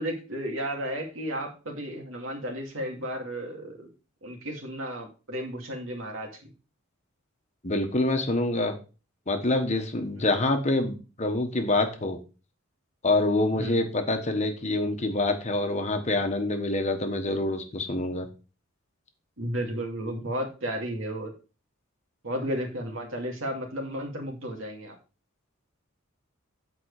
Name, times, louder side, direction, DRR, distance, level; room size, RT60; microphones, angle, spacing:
voice 1, 0.0-3.9 4.2-6.5 10.1-10.5 13.5-13.8 19.4-21.3 22.2-25.0, equal, 70° right, 2 dB, 2.4 m, -33 dB
voice 2, 7.6-8.8 9.3-12.2 13.0-18.3, left 2 dB, 35° left, 5 dB, 1.2 m, -26 dB
9.0 x 4.9 x 4.8 m, 0.33 s
head